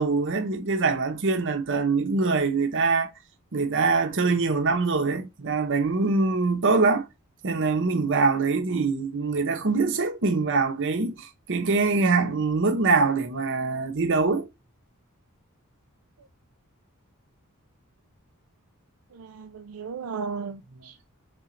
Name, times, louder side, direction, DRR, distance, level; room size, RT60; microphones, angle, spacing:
voice 1, 0.0-3.1 3.5-7.1 7.4-14.5, right 4 dB, 60° right, 0.9 m, -24 dB
voice 2, 19.1-21.1, right 5 dB, 75° right, 0.5 m, -36 dB
3.8 x 3.7 x 3.2 m
head